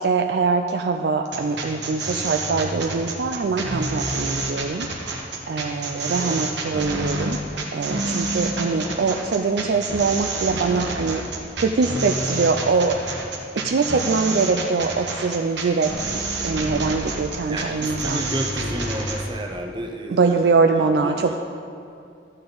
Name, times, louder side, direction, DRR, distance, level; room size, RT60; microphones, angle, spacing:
voice 1, 0.0-4.9 5.5-7.4 7.7-13.0 13.5-15.9 16.4-18.3 20.1-21.4, right 4 dB, 65° right, 5 dB, 0.4 m, -23 dB
sound 1, 1.2-19.2, right 2 dB, 80° right, 1.3 m, -28 dB
voice 2, 5.9-6.4 8.5-9.1 17.5-21.4, right 1 dB, 25° right, 3 dB, 0.8 m, -33 dB
12.5 x 8.7 x 3.9 m, 2.5 s
head